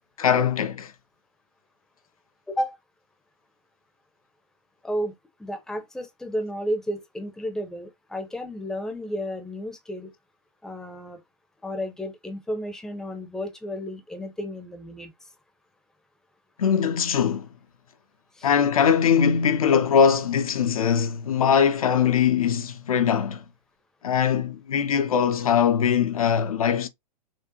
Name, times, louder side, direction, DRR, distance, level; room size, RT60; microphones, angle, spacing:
voice 1, 0.2-0.9 16.6-17.5 18.4-23.4 24.0-26.9, left 7 dB, 60° left, 0.7 m, -21 dB
voice 2, 2.5-2.8 4.8-5.1 5.4-10.1 10.6-11.2 11.6-15.1 18.4-18.5, equal, 5° left, 0.7 m, -32 dB
6.1 x 2.4 x 2.8 m
figure-of-eight pair, 105°, 20 cm